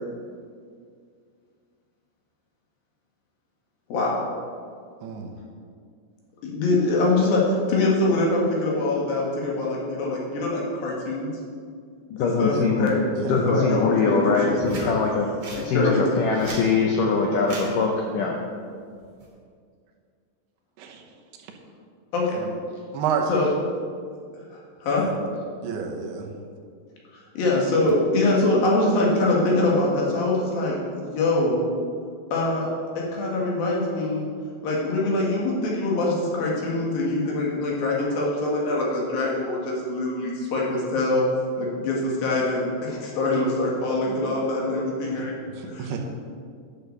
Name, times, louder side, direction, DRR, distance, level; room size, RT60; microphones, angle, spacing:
voice 1, 3.9-4.2 6.4-11.3 12.2-13.0 13.5-14.9 15.5-16.0 22.1-22.4 23.3-23.5 24.3-25.0 27.4-31.6 32.3-32.7 33.0-34.3 34.6-41.2 41.6-45.4 45.6-46.0, left 2 dB, 65° left, -3 dB, 3.4 m, -24 dB
voice 2, 12.1-12.9 13.3-15.3 15.6-18.4, left 4 dB, 80° left, 1 dB, 1.9 m, -22 dB
sound 1, 14.6-14.9 15.4-15.6 16.2-16.7 17.4-17.7 19.0-19.3, right 1 dB, 45° right, 3.5 m, -35 dB
voice 3, 22.9-23.3 25.0-25.1 25.6-26.3 45.8-46.0, right 7 dB, 75° right, 1 dB, 2.9 m, -29 dB
10.5 x 6.7 x 6.8 m, 2.2 s
omnidirectional pair, 4.8 m